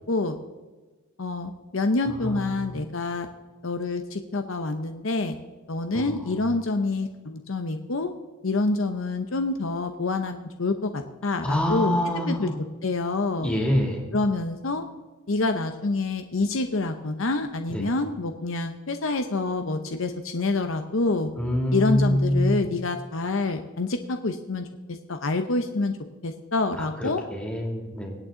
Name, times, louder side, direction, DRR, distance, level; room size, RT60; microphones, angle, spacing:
voice 1, 0.1-0.4 1.2-3.3 3.6-5.4 5.7-8.1 8.4-11.9 12.3-12.5 12.8-13.5 14.1-14.8 15.3-21.3 21.7-25.9 26.2-27.2, left 3 dB, 60° left, 7 dB, 0.8 m, -27 dB
voice 2, 2.1-2.8 5.9-6.3 11.4-12.5 13.4-14.0 17.7-17.8 21.4-22.7 26.8-28.1, left 1 dB, 5° left, -1 dB, 2.5 m, -26 dB
24.5 x 8.9 x 3.9 m, 1.3 s
head